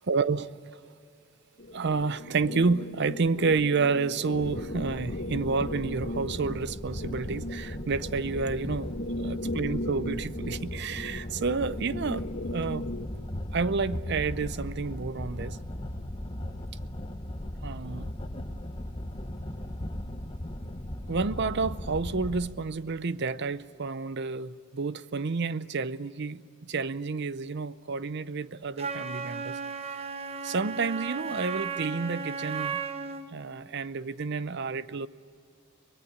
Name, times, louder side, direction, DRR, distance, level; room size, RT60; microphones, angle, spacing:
voice 1, 0.1-0.5 1.7-8.9 9.2-12.8 13.5-15.6 17.6-18.1 21.1-29.6 30.4-32.8 33.3-35.1, right 4 dB, 55° right, 0.6 m, -30 dB
sound 1, 1.6-13.1, left 1 dB, 55° left, 1.5 m, -38 dB
sound 2, 4.3-22.5, left 1 dB, 25° left, 1.1 m, -37 dB
Wind instrument woodwind instrument, 28.8-33.3, right 5 dB, 30° right, 1.1 m, -35 dB
23.5 x 21.0 x 9.5 m
head